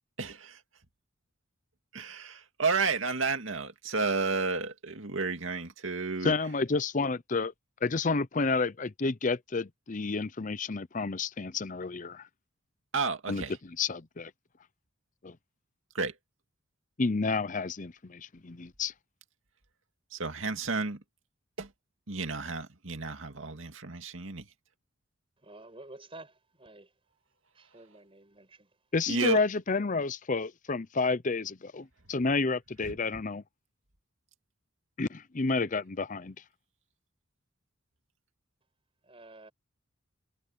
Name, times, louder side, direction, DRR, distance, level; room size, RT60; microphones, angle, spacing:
voice 1, 0.2-0.6 1.9-6.4 12.9-13.6 15.9-16.2 20.1-21.0 21.6-21.7 22.1-24.5 29.1-29.4 32.8-33.2, right 4 dB, 75° right, 2.3 m, -32 dB
voice 2, 6.2-7.5 7.8-12.2 13.3-13.4 13.8-14.3 15.2-15.4 17.0-18.9 28.9-33.4 35.0-36.4, left 4 dB, 40° left, 0.7 m, -30 dB
voice 3, 25.4-26.9 27.5-28.8 39.0-39.5, right 2 dB, 25° right, 5.8 m, -50 dB
head